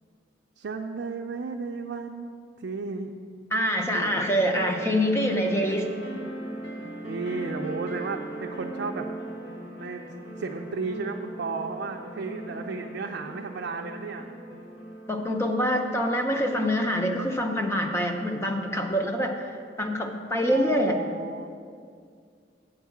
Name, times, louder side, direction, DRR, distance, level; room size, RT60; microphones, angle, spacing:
voice 1, 0.6-3.1 3.9-4.2 7.0-9.1 9.8-10.0 10.4-14.3 20.5-21.5, right 4 dB, 75° right, 1 dB, 0.4 m, -34 dB
voice 2, 3.5-6.0 15.1-19.4 19.8-21.0, equal, 15° left, 3 dB, 0.6 m, -25 dB
sound 1, 4.0-17.6, right 1 dB, 85° left, 1.0 m, -40 dB
8.0 x 4.6 x 7.1 m, 2.2 s
head